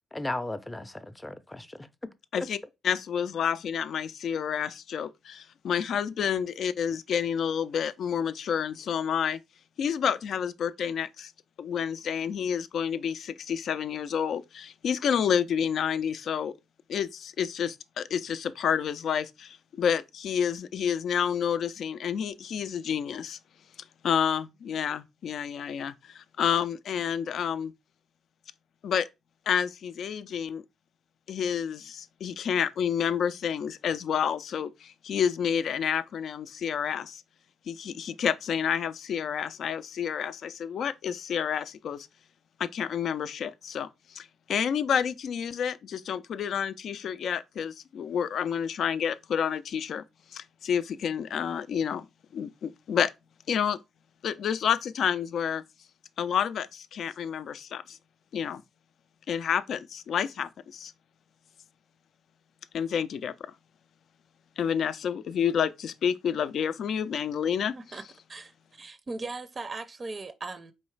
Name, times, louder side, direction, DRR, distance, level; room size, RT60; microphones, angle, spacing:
voice 1, 0.1-2.5, left 2 dB, 15° left, 0.5 m, -36 dB
voice 2, 2.8-9.4 9.8-11.3 11.6-16.5 16.9-23.4 24.0-27.7 28.8-29.1 29.5-30.6 31.3-37.2 37.7-42.1 42.6-50.0 50.3-52.1 52.3-53.1 53.5-53.8 54.2-55.6 56.2-58.0 58.3-58.6 59.3-60.9 62.7-63.5 64.6-67.7, left 8 dB, 65° left, 0.4 m, -29 dB
voice 3, 67.7-68.0 68.3-70.7, right 3 dB, 35° right, 0.5 m, -38 dB
4.6 x 3.1 x 3.2 m
cardioid pair, 90°, 0 cm